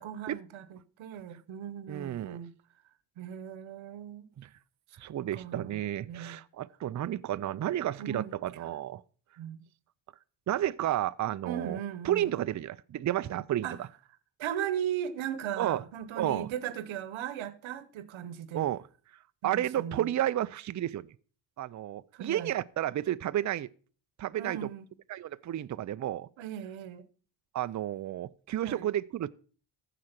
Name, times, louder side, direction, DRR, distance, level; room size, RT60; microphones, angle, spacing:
voice 1, 0.0-2.5 3.2-4.3 5.3-5.8 6.1-6.4 8.0-8.3 9.4-9.7 11.4-12.4 13.6-13.8 14.4-18.7 19.4-20.1 22.1-22.5 24.4-24.8 26.4-27.1 28.6-28.9, right 9 dB, 85° right, 1.0 m, -38 dB
voice 2, 1.9-2.4 4.4-4.5 5.0-9.0 10.5-11.8 12.0-13.9 15.6-15.8 16.2-16.5 18.5-18.8 19.4-21.1 21.6-23.7 24.2-24.7 25.1-26.3 27.5-29.3, right 12 dB, 40° right, 0.5 m, -32 dB
14.5 x 5.0 x 5.9 m
cardioid pair, 90°, 46 cm